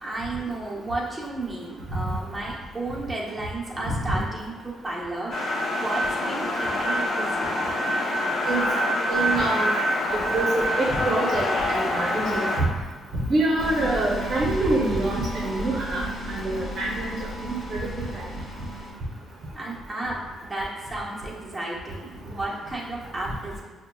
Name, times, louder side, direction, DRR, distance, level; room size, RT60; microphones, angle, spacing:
voice 1, 0.0-5.3 5.8-7.6 19.5-23.6, right 2 dB, 20° right, -5 dB, 0.9 m, -33 dB
sound 1, 5.3-12.6, left 1 dB, 65° left, 0.8 m, -25 dB
voice 2, 9.1-9.8 10.3-12.5 13.3-16.0 16.4-17.1 17.4-18.2, right 2 dB, 55° right, -4 dB, 0.7 m, -26 dB
sound 2, 13.6-18.9, right 1 dB, 50° left, 1.2 m, -34 dB
5.6 x 2.2 x 2.3 m, 1.3 s
cardioid pair, 90°, 0 cm